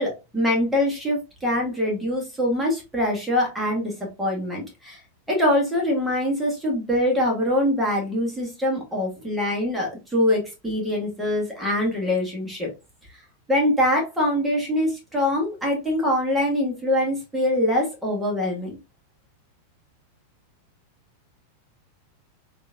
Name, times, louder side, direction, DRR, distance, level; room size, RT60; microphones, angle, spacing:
voice 1, 0.0-3.9 4.2-5.0 5.3-12.7 13.5-18.8, left 1 dB, 5° right, -2 dB, 1.5 m, -24 dB
3.6 x 2.7 x 2.4 m, 0.27 s
figure-of-eight pair, 90°, 0 cm